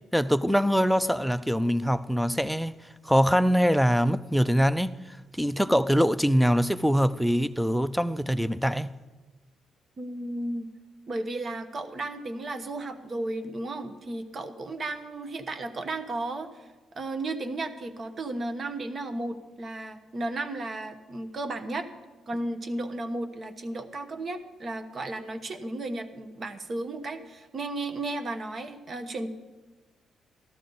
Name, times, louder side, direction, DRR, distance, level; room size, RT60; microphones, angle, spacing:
voice 1, 0.1-2.7 3.0-8.9, equal, ahead, 0.4 m, -23 dB
voice 2, 10.0-10.7 11.1-16.7 16.9-21.9 22.3-29.3, right 2 dB, 45° right, 1.0 m, -34 dB
13.0 x 12.5 x 3.9 m
cardioid pair, 90°, 0 cm